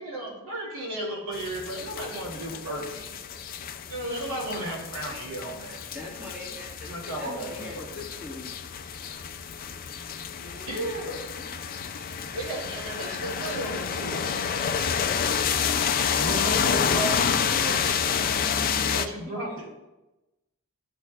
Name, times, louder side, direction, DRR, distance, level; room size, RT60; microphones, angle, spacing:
voice 1, 0.0-3.1 3.9-5.8 6.9-7.8 10.7-11.2 12.3-14.4 16.1-18.0 18.8-19.6, right 1 dB, 85° right, -4 dB, 2.5 m, -34 dB
sound 1, 1.3-19.1, left 7 dB, 40° left, 0.4 m, -29 dB
voice 2, 5.9-8.5, left 2 dB, 5° right, -6 dB, 1.7 m, -40 dB
voice 3, 10.2-11.5 19.2-19.7, equal, 40° right, -5 dB, 1.4 m, -48 dB
13.0 x 4.3 x 2.4 m, 1.0 s
head